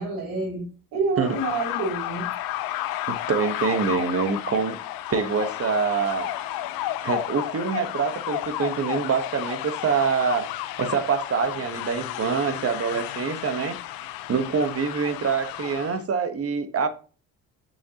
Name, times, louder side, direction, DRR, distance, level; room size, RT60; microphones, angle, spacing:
voice 1, 0.0-2.3, right 3 dB, 90° right, 3.9 m, -28 dB
sound 1, 1.2-16.0, left 13 dB, 90° left, 0.7 m, -32 dB
voice 2, 3.1-4.8 5.1-6.3 7.0-10.5 10.8-13.8 14.3-16.9, right 5 dB, 40° right, 1.3 m, -25 dB
7.0 x 6.3 x 2.9 m
cardioid pair, 95°, 35 cm